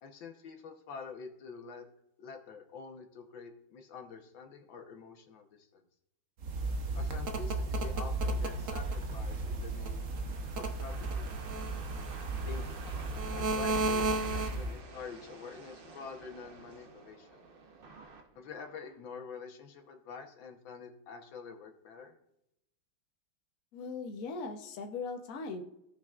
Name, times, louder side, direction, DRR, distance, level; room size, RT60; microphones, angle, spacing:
voice 1, 0.0-1.9 2.2-5.8 6.9-10.1 10.6-11.3 12.3-12.6 13.3-17.5 18.3-22.1, left 5 dB, 75° left, 4 dB, 1.8 m, -47 dB
sound 1, 6.4-14.8, right 2 dB, 50° right, 1.0 m, -34 dB
sound 2, 7.8-18.9, right 4 dB, 80° right, 0.5 m, -51 dB
voice 2, 23.7-25.6, left 4 dB, 55° left, 4 dB, 1.2 m, -39 dB
17.5 x 5.9 x 2.4 m, 0.83 s
omnidirectional pair, 2.2 m